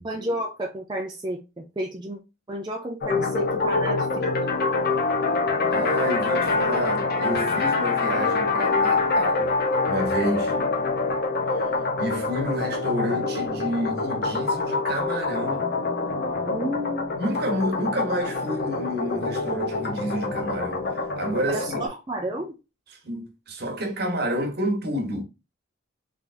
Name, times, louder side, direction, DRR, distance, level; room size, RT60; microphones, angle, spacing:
voice 1, 0.0-2.2 2.5-4.3 16.4-17.1 21.5-22.5, right 1 dB, 20° right, 0.5 m, -31 dB
sound 1, 3.0-21.9, left 3 dB, 50° left, 0.8 m, -25 dB
voice 2, 5.7-9.5 9.8-10.6 11.6-11.7 12.0-15.7 17.2-21.9 23.0-25.2, equal, 50° right, 1.1 m, -29 dB
3.4 x 3.4 x 2.5 m
head